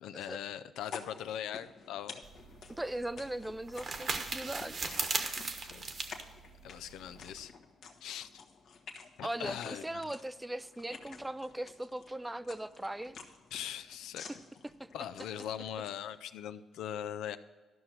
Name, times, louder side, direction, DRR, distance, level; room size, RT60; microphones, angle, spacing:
voice 1, 0.0-2.2 5.7-5.9 6.6-7.5 8.0-8.4 9.2-10.0 13.5-14.3 14.9-17.4, left 10 dB, 85° left, 12 dB, 0.5 m, -40 dB
sound 1, 0.8-16.2, left 5 dB, 65° left, 1.3 m, -52 dB
sound 2, 2.2-7.4, right 4 dB, 45° right, 1.2 m, -38 dB
voice 2, 2.8-4.7 9.2-13.2 14.8-14.9, right 1 dB, 10° right, 15 dB, 0.4 m, -39 dB
13.0 x 5.9 x 6.4 m, 1.4 s
cardioid pair, 90°, 0 cm